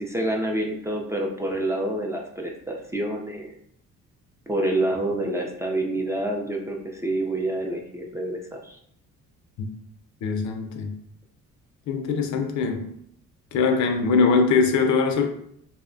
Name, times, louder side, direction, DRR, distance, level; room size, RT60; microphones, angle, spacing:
voice 1, 0.0-3.6 4.5-8.8, right 1 dB, 10° right, 0.4 m, -27 dB
voice 2, 10.2-10.9 11.9-12.9 13.5-15.3, left 4 dB, 70° left, 0.5 m, -22 dB
2.7 x 2.1 x 2.5 m
cardioid pair, 90°, 30 cm